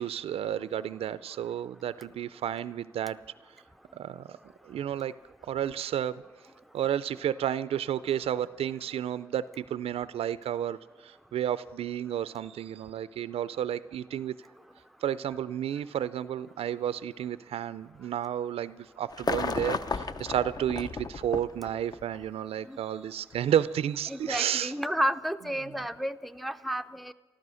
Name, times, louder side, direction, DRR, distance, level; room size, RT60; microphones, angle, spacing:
voice 1, 0.0-3.2 3.9-4.4 4.6-5.1 5.5-6.2 6.7-14.4 15.0-24.7, right 10 dB, 85° right, 16 dB, 0.4 m, -31 dB
sound 1, 19.1-22.2 23.3-23.4, left 4 dB, 40° left, 0.6 m, -33 dB
voice 2, 24.1-27.1, equal, ahead, 10 dB, 0.5 m, -31 dB
13.5 x 13.0 x 6.3 m, 1.3 s
cardioid pair, 85°, 10 cm